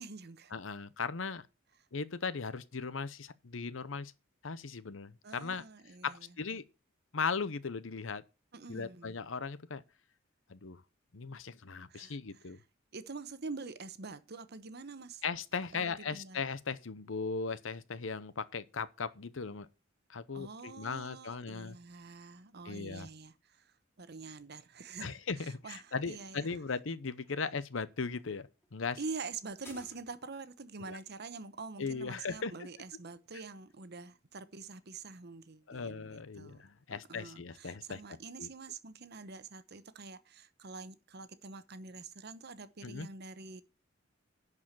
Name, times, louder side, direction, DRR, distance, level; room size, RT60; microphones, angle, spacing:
voice 1, 0.0-0.5 5.2-6.3 8.5-9.2 11.9-12.2 12.9-15.2 15.7-16.4 20.3-23.6 24.0-26.4 29.0-43.6, right 4 dB, 55° right, 0.9 m, -46 dB
voice 2, 0.5-1.4 1.9-4.1 4.4-5.6 6.0-6.6 7.1-8.2 8.7-9.8 10.5-10.8 11.1-12.6 15.2-19.7 20.1-21.8 22.6-23.1 25.0-29.0 30.9-31.0 31.8-32.7 35.7-38.0 38.4-38.5 42.8-43.1, left 5 dB, 75° left, 0.8 m, -38 dB
sound 1, 25.5-30.5, left 1 dB, 15° left, 3.0 m, -61 dB
11.0 x 4.9 x 7.4 m
head